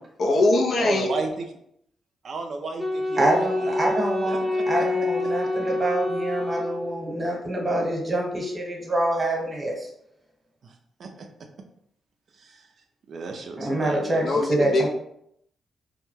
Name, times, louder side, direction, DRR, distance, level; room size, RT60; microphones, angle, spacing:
voice 1, 0.2-1.2 14.0-14.9, left 2 dB, 65° left, 1 dB, 0.4 m, -22 dB
voice 2, 0.8-1.5 2.2-4.9 10.6-10.7 11.0-11.1 12.4-12.7 13.1-14.4, right 3 dB, 65° right, 4 dB, 0.3 m, -34 dB
Wind instrument woodwind instrument, 2.8-7.2, left 2 dB, 15° left, 0.6 m, -27 dB
voice 3, 3.2-9.9 13.6-14.9, right 1 dB, 30° right, 0 dB, 0.9 m, -26 dB
2.1 x 2.0 x 3.0 m, 0.73 s
supercardioid pair, 45°, 0 cm